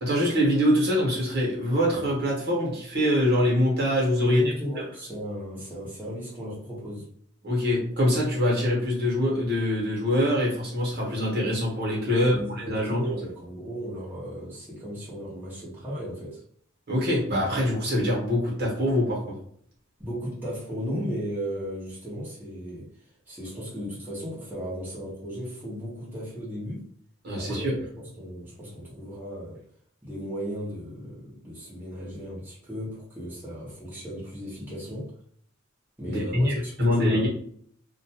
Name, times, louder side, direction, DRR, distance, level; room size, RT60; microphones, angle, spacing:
voice 1, 0.0-4.4 7.4-13.0 16.9-19.4 27.2-27.7 36.1-36.5 36.8-37.3, equal, 50° right, -4 dB, 1.1 m, -24 dB
voice 2, 4.2-7.1 12.1-16.4 20.0-26.8 27.4-29.6 30.0-35.1 36.0-37.3, equal, 10° right, -8 dB, 0.9 m, -36 dB
2.5 x 2.2 x 2.8 m, 0.62 s
head